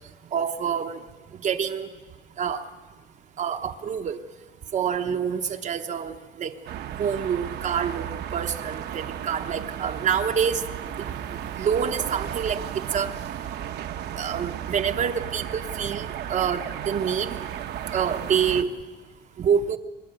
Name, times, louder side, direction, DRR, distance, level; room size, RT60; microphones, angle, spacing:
voice 1, 0.3-1.0 1.4-1.9 2.4-2.6 3.4-4.2 4.7-6.1 6.4-6.5 7.0-10.6 11.6-12.6 12.9-13.1 14.2-17.4 17.9-18.7 19.4-19.8, right 7 dB, 40° right, 5 dB, 0.9 m, -26 dB
sound 1, 6.7-18.6, right 10 dB, 65° right, 1.0 m, -34 dB
24.5 x 12.5 x 9.0 m, 1.3 s
cardioid pair, 150°, 18 cm